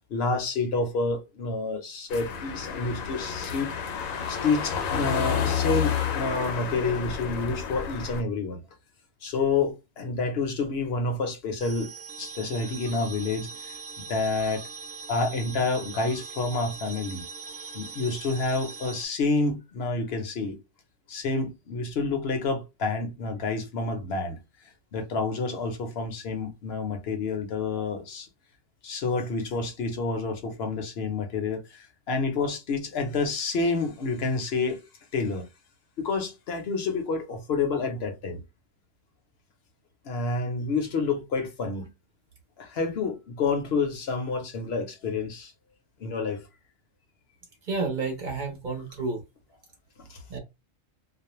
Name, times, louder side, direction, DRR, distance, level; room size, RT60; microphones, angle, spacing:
voice 1, 0.1-3.8 4.3-8.6 9.2-11.9 12.2-14.7 15.1-17.2 17.7-20.6 21.1-24.4 24.9-28.3 28.8-34.8 35.1-35.5 36.0-38.4 40.0-41.9 42.6-45.5 46.0-46.4 50.0-50.2, left 3 dB, 60° left, 0.8 m, -29 dB
sound 1, 2.1-8.2, left 7 dB, 90° left, 1.0 m, -30 dB
sound 2, 11.6-19.1, right 5 dB, 75° right, 0.9 m, -41 dB
voice 2, 47.7-49.2 50.3-50.4, right 3 dB, 45° right, 0.8 m, -30 dB
2.4 x 2.0 x 2.9 m
omnidirectional pair, 1.3 m